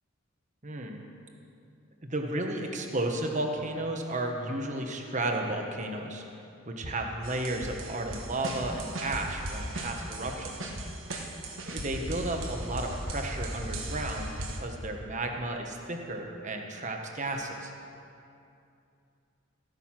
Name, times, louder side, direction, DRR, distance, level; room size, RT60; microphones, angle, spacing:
voice 1, 0.6-1.0 2.0-6.2 6.6-10.7 11.7-17.7, right 2 dB, 35° right, 3 dB, 1.2 m, -33 dB
sound 1, 7.2-14.6, right 1 dB, 70° right, 1.5 m, -37 dB
14.0 x 9.2 x 5.9 m, 2.6 s
head